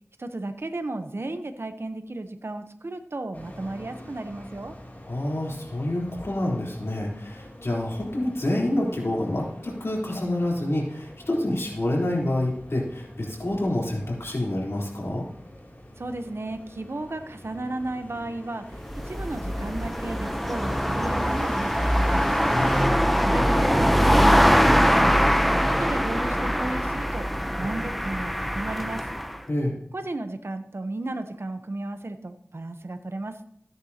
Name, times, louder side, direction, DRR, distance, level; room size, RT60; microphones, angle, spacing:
voice 1, 0.2-4.8 16.0-18.8 19.0-22.3 23.2-25.3 25.6-27.3 27.6-29.1 29.9-33.4, right 2 dB, 70° right, 8 dB, 0.9 m, -34 dB
sound 1, 3.3-22.9, left 1 dB, 40° left, 2.9 m, -43 dB
voice 2, 5.1-15.2 22.5-23.0 29.5-29.7, left 1 dB, 80° left, -3 dB, 3.6 m, -27 dB
sound 2, 18.7-29.4, equal, ahead, 0.7 m, -22 dB
14.5 x 9.5 x 2.9 m, 0.69 s
wide cardioid pair, 45°, 4 cm